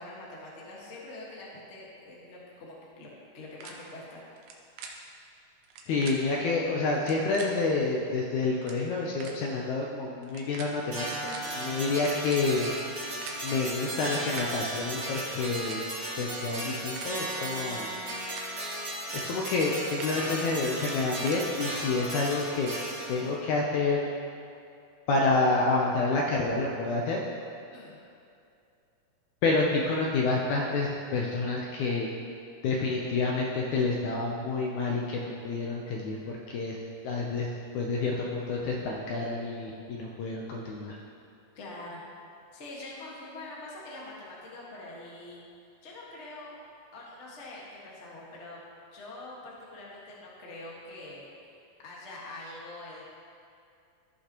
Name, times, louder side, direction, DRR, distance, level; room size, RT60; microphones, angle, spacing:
voice 1, 0.0-3.1 3.3-4.2 27.7-28.0 41.5-42.0 42.5-45.4 45.8-46.6 46.9-48.6 48.9-51.3 51.8-53.0, left 2 dB, 40° left, -5 dB, 0.9 m, -44 dB
sound 1, 3.6-3.7 4.4-4.5 4.8-4.9 5.6-6.1 6.9-7.5 8.2-8.3 8.5-8.8 9.2-9.3 10.2-10.7 11.0-11.4 11.9-13.4 14.0-14.5 15.3-15.8 16.6-17.1 18.0-18.4 19.0-19.2 19.6-20.2 20.8-21.4, right 6 dB, 75° right, 2.3 m, -44 dB
voice 2, 5.9-12.7 13.4-15.8 16.2-17.9 19.1-22.7 23.1-24.1 25.1-27.2 29.4-32.1 32.6-36.8 37.0-41.0, left 3 dB, 75° left, -2 dB, 1.9 m, -28 dB
sound 2, 10.9-23.4, right 1 dB, 40° right, 2.0 m, -35 dB
15.5 x 5.7 x 3.0 m, 2.5 s
omnidirectional pair, 4.0 m